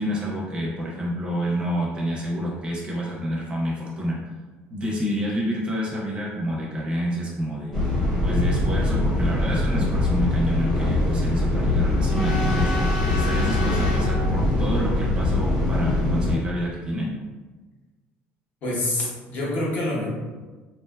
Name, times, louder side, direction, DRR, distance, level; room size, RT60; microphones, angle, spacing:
voice 1, 0.0-4.2 4.7-7.8 8.2-12.7 13.1-17.1, equal, 25° right, -3 dB, 0.4 m, -28 dB
sound 1, 7.7-16.4, left 2 dB, 15° left, 0.8 m, -22 dB
voice 2, 18.6-20.1, left 1 dB, 50° left, -4 dB, 0.7 m, -26 dB
2.7 x 2.1 x 2.2 m, 1.3 s
cardioid pair, 160°, 4 cm